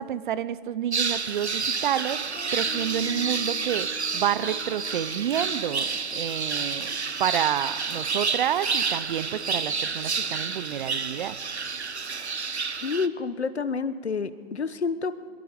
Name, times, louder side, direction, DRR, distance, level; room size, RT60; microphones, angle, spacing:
voice 1, 0.0-2.2 2.5-3.9 4.1-5.9 6.1-6.9 7.2-11.4, right 10 dB, 50° right, 16 dB, 0.9 m, -29 dB
sound 1, 0.9-13.1, right 5 dB, 90° right, 1.0 m, -29 dB
sound 2, 2.3-9.2, left 8 dB, 10° left, 3.4 m, -48 dB
voice 2, 12.8-15.3, left 5 dB, 80° left, 14 dB, 1.2 m, -29 dB
24.0 x 22.0 x 5.4 m, 2.2 s
figure-of-eight pair, 125°, 32 cm